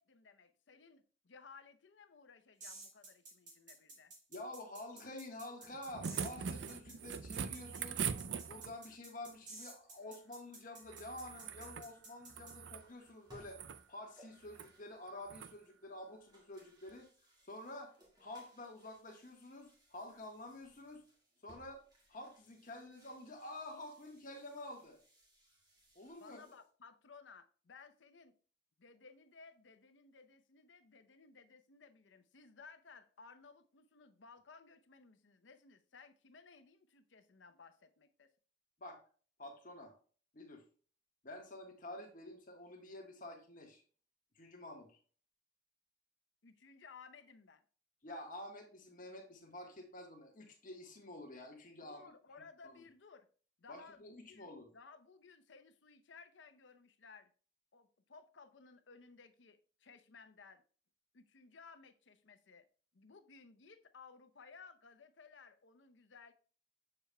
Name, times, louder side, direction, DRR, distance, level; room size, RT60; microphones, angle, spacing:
voice 1, 0.0-4.1 26.2-28.4 28.8-38.3 46.4-47.6 51.8-53.3 53.6-57.3 57.7-60.6 61.1-62.7 62.9-66.3, left 5 dB, 75° left, 0.7 m, -59 dB
sound 1, 2.6-12.5, right 2 dB, 45° right, 2.5 m, -53 dB
voice 2, 4.3-8.0 8.5-13.6 13.9-17.1 17.5-17.9 18.2-21.0 21.4-21.8 22.1-25.0 25.9-26.4 38.8-39.0 39.4-39.9 40.3-40.6 41.2-43.8 44.3-45.0 48.0-52.1 52.6-52.8 53.7-54.7, left 1 dB, 45° left, 1.4 m, -49 dB
sound 2, 5.6-8.9 10.9-11.9 12.2-12.9 13.4-13.8 14.5-14.7 15.3-15.5 16.9-17.0, right 7 dB, 75° right, 0.5 m, -42 dB
sound 3, 12.0-26.7, equal, 25° right, 1.7 m, -67 dB
6.8 x 6.7 x 2.2 m
head